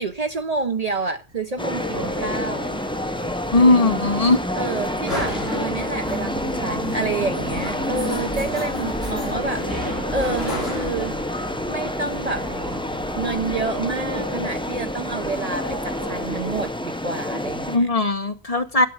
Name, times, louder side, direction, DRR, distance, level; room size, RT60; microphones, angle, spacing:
voice 1, 0.0-2.7 4.5-11.2 11.7-12.5 13.2-17.9, right 3 dB, 40° right, 0.7 m, -29 dB
Mall Ambient, 1.6-17.8, left 1 dB, 5° left, 0.4 m, -28 dB
sound 1, 1.8-16.7, right 1 dB, 20° right, 1.2 m, -36 dB
voice 2, 3.5-4.4 17.7-18.9, left 2 dB, 35° left, 1.0 m, -18 dB
sound 2, 3.9-13.8, equal, 65° right, 8.0 m, -36 dB
11.5 x 8.5 x 7.1 m
omnidirectional pair, 1.1 m